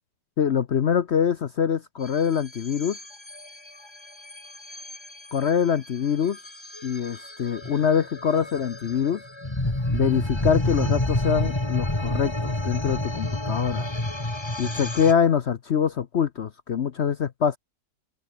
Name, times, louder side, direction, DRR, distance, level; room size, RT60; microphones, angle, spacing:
voice 1, 0.4-3.0 5.3-6.4 6.8-9.2 9.9-13.9 14.6-17.6, left 7 dB, 50° left, 0.9 m, -24 dB
sound 1, 2.0-15.1, left 1 dB, 15° left, 2.4 m, -30 dB
open air
omnidirectional pair, 1.7 m